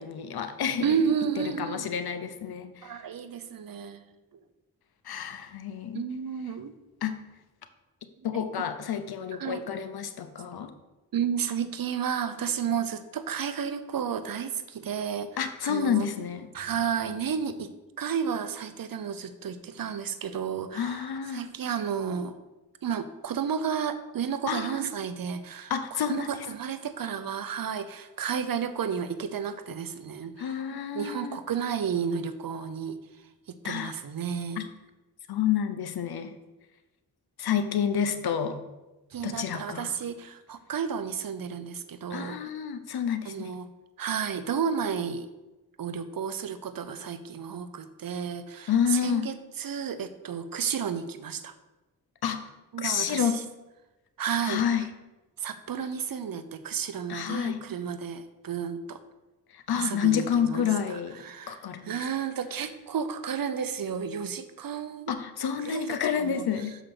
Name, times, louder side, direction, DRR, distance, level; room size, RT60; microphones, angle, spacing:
voice 1, 0.0-0.9 1.4-3.0 5.0-6.1 7.0-7.2 8.2-10.7 15.4-16.5 20.7-21.4 24.5-24.8 25.7-26.5 30.4-31.4 33.6-33.9 34.6-34.7 35.3-36.3 37.4-38.6 39.2-39.9 42.1-43.5 48.7-49.3 52.2-52.5 52.8-53.4 54.4-54.9 57.1-57.6 59.5-61.2 61.5-61.9 65.1-66.8, left 8 dB, 85° left, 9 dB, 0.8 m, -29 dB
voice 2, 0.8-1.9 2.8-4.1 5.9-6.7 8.2-8.5 9.4-9.6 11.1-15.3 15.6-16.1 16.5-17.7 18.0-22.3 22.8-33.0 33.5-34.6 39.1-42.4 43.2-43.7 44.0-45.3 45.8-51.5 52.7-53.4 54.2-54.6 55.4-59.0 59.7-65.1 65.6-66.5, right 7 dB, 65° right, 11 dB, 0.7 m, -32 dB
6.5 x 5.1 x 5.9 m, 1.1 s
cardioid pair, 55°, 37 cm